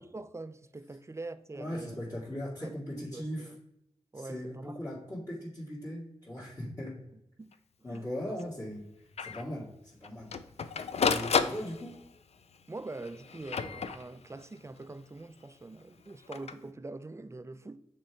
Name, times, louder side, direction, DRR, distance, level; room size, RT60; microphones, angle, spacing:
voice 1, 0.0-2.0 2.6-3.6 4.1-4.8 6.5-6.8 7.4-7.6 7.9-8.4 12.7-17.8, right 2 dB, 25° right, 0.4 m, -44 dB
voice 2, 1.5-3.5 4.1-7.0 7.8-8.9 9.2-10.4 11.0-12.0, equal, 30° left, 2.0 m, -39 dB
Printer, 7.5-7.6 7.9-8.0 8.4-8.5 9.2-9.4 10.0-12.2 13.0-14.4 16.1-16.5, left 6 dB, 60° left, 0.4 m, -32 dB
5.9 x 3.4 x 4.6 m
cardioid pair, 45°, 12 cm